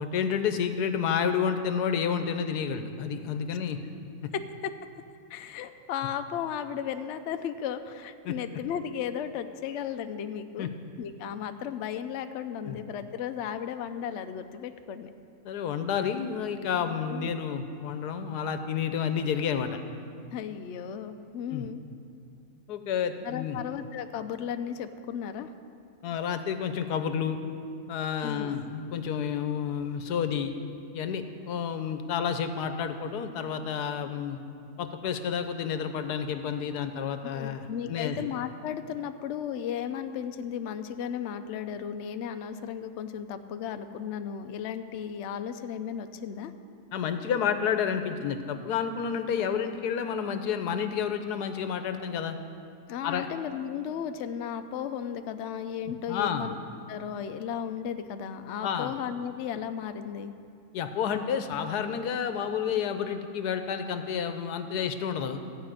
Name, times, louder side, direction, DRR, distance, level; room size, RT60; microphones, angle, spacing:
voice 1, 0.0-3.8 8.2-8.3 10.6-10.7 12.7-12.8 15.4-19.7 21.5-21.7 22.7-23.6 26.0-27.4 27.9-30.5 30.9-34.4 34.8-38.2 46.9-52.4 53.0-53.3 56.1-56.5 58.6-59.0 60.7-65.4, left 7 dB, 85° left, 9 dB, 1.3 m, -30 dB
voice 2, 4.3-4.7 5.3-10.7 11.0-15.1 17.1-17.3 20.3-21.8 23.2-25.5 28.2-28.5 37.2-46.5 52.9-56.6 56.9-60.3, left 8 dB, 65° left, 8 dB, 0.7 m, -35 dB
14.5 x 5.1 x 8.9 m, 2.5 s
omnidirectional pair, 1.7 m